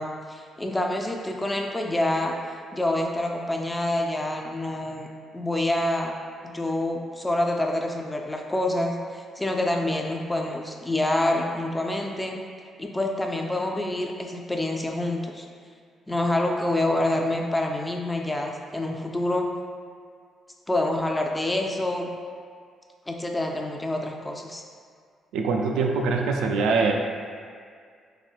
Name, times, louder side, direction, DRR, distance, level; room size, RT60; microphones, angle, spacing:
voice 1, 0.0-2.3 2.7-5.1 5.3-6.1 6.4-12.4 12.8-15.5 16.1-19.5 20.7-22.1 23.1-24.6, left 1 dB, 15° left, 1 dB, 0.4 m, -27 dB
voice 2, 25.3-26.9, right 4 dB, 90° right, 2 dB, 0.3 m, -23 dB
4.2 x 2.5 x 2.4 m, 2.1 s
cardioid pair, 90°, 0 cm